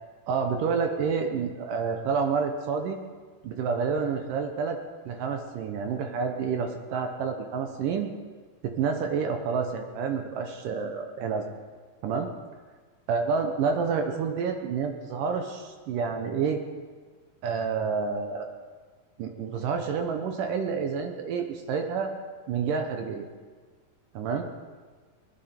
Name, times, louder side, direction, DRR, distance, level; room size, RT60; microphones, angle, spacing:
voice 1, 0.3-3.0 3.4-4.8 5.1-8.1 8.6-11.5 12.0-12.3 13.1-16.6 17.4-18.5 19.2-22.1 22.5-23.3 24.1-24.4, right 5 dB, 70° right, 5 dB, 2.3 m, -29 dB
21.0 x 11.5 x 4.4 m, 1.5 s
omnidirectional pair, 4.3 m